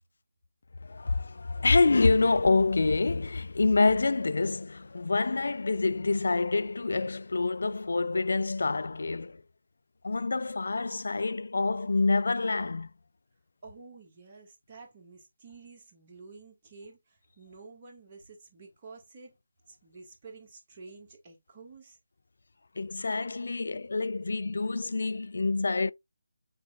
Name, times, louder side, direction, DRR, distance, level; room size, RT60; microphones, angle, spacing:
voice 1, 0.8-9.4 10.0-12.9 22.8-25.9, left 3 dB, 65° left, 0.4 m, -27 dB
voice 2, 13.6-19.3 19.7-22.0, right 4 dB, 30° right, 1.8 m, -50 dB
6.6 x 3.2 x 2.4 m
figure-of-eight pair, 155°, 0 cm